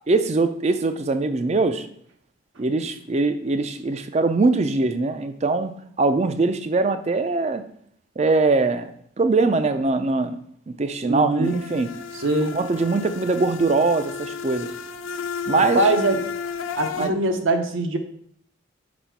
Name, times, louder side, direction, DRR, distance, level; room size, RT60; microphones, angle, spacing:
voice 1, 0.1-1.9 2.6-5.7 6.0-7.6 8.2-8.9 9.2-10.4 10.7-11.9 12.5-14.7 15.5-15.8 17.0-17.1, right 3 dB, 35° right, 10 dB, 0.4 m, -22 dB
voice 2, 11.0-11.6 12.1-12.5 15.7-16.2 16.8-18.0, right 2 dB, 75° right, 5 dB, 0.8 m, -22 dB
sound 1, 11.4-17.1, left 6 dB, 75° left, 0.4 m, -32 dB
5.5 x 4.1 x 4.5 m, 0.65 s
head